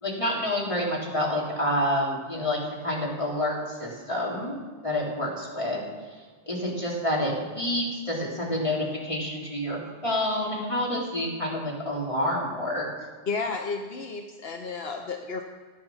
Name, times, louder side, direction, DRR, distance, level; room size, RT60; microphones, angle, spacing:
voice 1, 0.0-4.6 4.8-5.8 6.5-12.9, left 1 dB, 30° left, -5 dB, 3.9 m, -28 dB
voice 2, 13.3-15.4, left 4 dB, 75° left, 3 dB, 1.1 m, -32 dB
15.0 x 9.5 x 7.2 m, 1.5 s
omnidirectional pair, 1.0 m